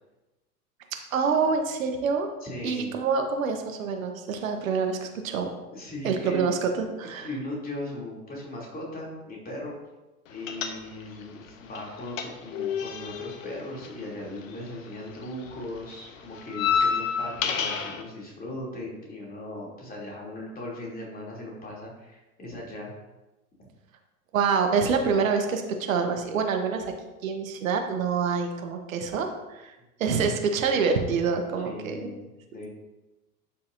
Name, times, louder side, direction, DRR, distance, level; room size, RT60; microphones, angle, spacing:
voice 1, 1.1-2.3 2.6-5.5 6.0-7.3 24.3-26.9 27.2-29.7 30.0-32.1, right 5 dB, 65° right, 5 dB, 1.3 m, -26 dB
voice 2, 2.4-2.9 5.7-6.5 7.2-9.8 10.3-22.9 31.6-32.7, left 1 dB, 20° left, -3 dB, 3.2 m, -38 dB
sound 1, 10.5-11.2 11.5-14.9 15.1-18.0, left 7 dB, 60° left, 1.1 m, -29 dB
11.5 x 7.0 x 2.7 m, 1.1 s
figure-of-eight pair, 85°, 45 cm